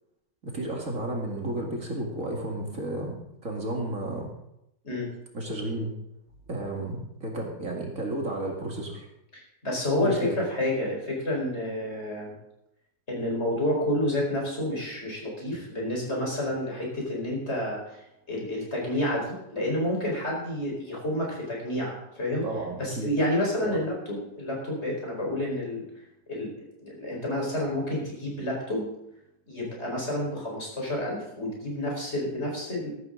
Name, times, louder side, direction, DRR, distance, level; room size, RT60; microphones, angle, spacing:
voice 1, 0.4-3.1 3.4-4.3 5.3-5.9 6.5-9.1 10.0-10.3 22.4-23.1 23.6-23.8, right 1 dB, 45° right, 0 dB, 2.5 m, -32 dB
voice 2, 9.3-12.3 13.1-18.0 18.3-22.5 22.8-25.8 26.3-26.5 26.8-28.9 29.5-32.9, left 1 dB, 35° left, -2 dB, 5.0 m, -29 dB
14.0 x 12.0 x 3.9 m, 0.82 s
omnidirectional pair, 1.9 m